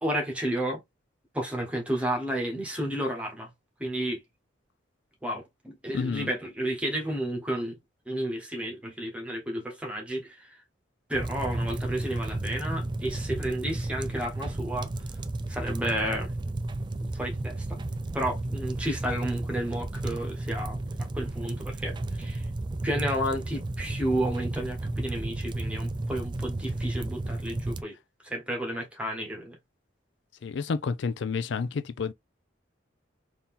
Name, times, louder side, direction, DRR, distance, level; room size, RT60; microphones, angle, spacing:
voice 1, 0.0-0.8 1.3-3.5 3.8-4.2 5.2-7.8 8.1-10.6 11.1-15.2 15.5-16.3 17.0-17.8 18.1-22.5 22.8-27.9 28.2-29.6, right 1 dB, 5° right, 1.3 m, -32 dB
voice 2, 5.9-6.3 30.4-32.1, left 5 dB, 70° left, 0.4 m, -30 dB
sound 1, 11.1-27.8, right 2 dB, 25° right, 0.3 m, -33 dB
4.1 x 2.8 x 3.7 m
head